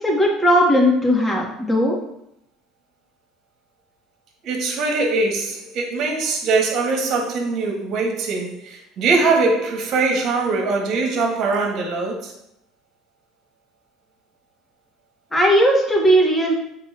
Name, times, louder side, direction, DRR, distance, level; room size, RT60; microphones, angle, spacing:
voice 1, 0.0-2.0 15.3-16.5, equal, 10° left, -3 dB, 2.3 m, -17 dB
voice 2, 4.4-12.3, right 3 dB, 55° right, 1 dB, 1.6 m, -22 dB
7.8 x 4.1 x 2.9 m, 0.77 s
hypercardioid pair, 70°, 0 cm